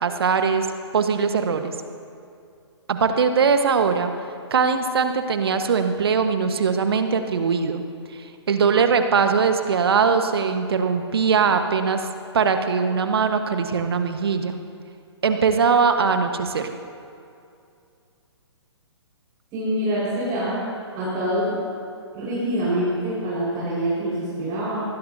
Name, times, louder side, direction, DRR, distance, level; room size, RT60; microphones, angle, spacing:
voice 1, 0.0-0.7 0.9-1.7 2.9-4.1 4.5-7.8 8.1-12.1 12.3-14.6 15.2-16.7, right 5 dB, 55° right, 7 dB, 1.4 m, -21 dB
voice 2, 19.5-20.6 20.9-21.6 22.1-24.8, right 1 dB, 25° right, -9 dB, 4.9 m, -25 dB
24.5 x 19.5 x 2.8 m, 2.4 s
figure-of-eight pair, 125°, 15 cm